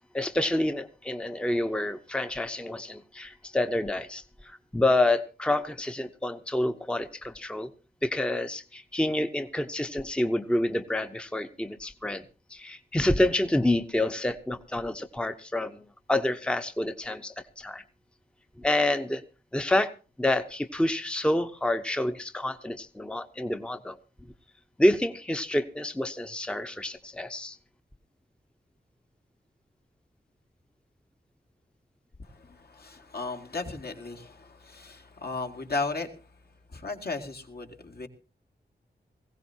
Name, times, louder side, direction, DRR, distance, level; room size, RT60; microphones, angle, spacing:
voice 1, 0.1-7.7 8.0-12.2 12.5-15.8 16.1-17.8 18.6-19.2 19.5-19.9 20.2-24.0 24.8-27.6, left 1 dB, 5° left, 8 dB, 0.8 m, -28 dB
voice 2, 32.2-36.2 36.7-38.1, left 3 dB, 60° left, 3 dB, 2.3 m, -35 dB
20.0 x 16.5 x 2.9 m, 0.34 s
wide cardioid pair, 80°, 18 cm